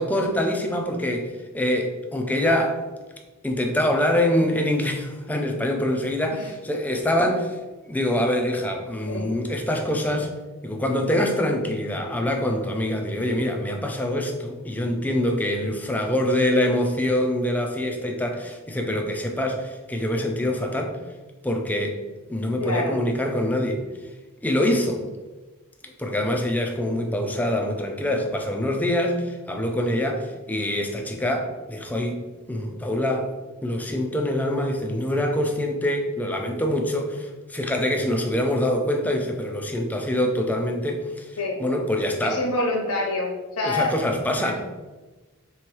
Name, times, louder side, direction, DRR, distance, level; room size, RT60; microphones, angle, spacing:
voice 1, 0.0-2.8 3.4-7.6 7.9-10.3 10.6-21.0 21.4-22.0 22.3-23.8 24.4-25.0 25.8-32.2 32.5-33.3 33.6-41.3 41.6-42.4 43.6-44.6, left 1 dB, 5° left, 3 dB, 0.4 m, -25 dB
voice 2, 22.6-23.0 41.4-41.6 42.2-43.9, left 2 dB, 85° left, -1 dB, 0.9 m, -26 dB
3.5 x 3.0 x 4.6 m, 1.2 s
head